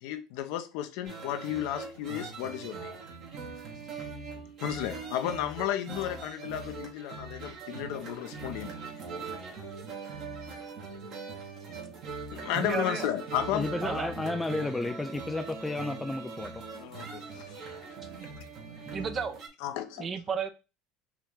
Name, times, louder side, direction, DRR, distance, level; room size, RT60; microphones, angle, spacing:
voice 1, 0.0-2.9 4.6-8.8 12.3-14.0 16.8-17.6 19.6-20.1, left 11 dB, 75° left, 0.7 m, -33 dB
sound 1, 1.0-19.5, right 4 dB, 55° right, 1.6 m, -41 dB
voice 2, 12.5-13.1 13.8-14.1 18.2-18.3 18.9-19.4 20.0-20.5, right 6 dB, 35° right, 0.7 m, -33 dB
voice 3, 13.5-16.6, left 2 dB, 10° left, 0.3 m, -32 dB
4.7 x 2.9 x 3.6 m
supercardioid pair, 105°, 0 cm